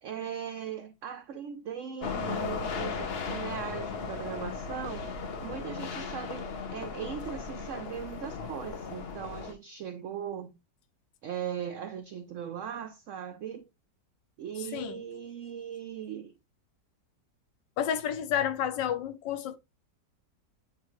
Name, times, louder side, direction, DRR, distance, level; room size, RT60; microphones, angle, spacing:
voice 1, 0.0-5.1 5.4-10.5 11.2-13.7 14.4-16.3, right 8 dB, 75° right, 0.7 m, -39 dB
sound 1, 2.0-9.5, left 5 dB, 50° left, 0.7 m, -36 dB
voice 2, 17.8-19.6, left 9 dB, 85° left, 1.4 m, -30 dB
8.5 x 3.7 x 3.1 m
omnidirectional pair, 1.9 m